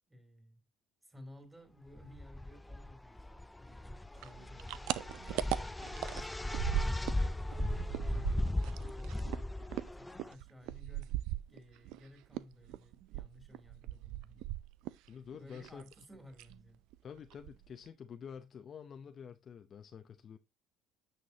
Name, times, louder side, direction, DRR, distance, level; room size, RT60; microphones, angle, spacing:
voice 1, 0.1-0.6 1.0-8.6 8.9-9.2 9.9-14.5 15.4-16.8, left 1 dB, 10° right, 3.5 m, -57 dB
sound 1, 2.0-10.3, left 1 dB, 10° left, 0.4 m, -37 dB
sound 2, 4.2-7.3 7.5-12.0 12.3-15.1 15.3-16.0 16.3-16.6 16.9-17.0 17.3-17.9, right 15 dB, 75° right, 0.4 m, -39 dB
voice 2, 15.1-16.2 17.0-20.4, left 7 dB, 45° left, 0.7 m, -49 dB
9.6 x 6.0 x 2.8 m
supercardioid pair, 90°, 0 cm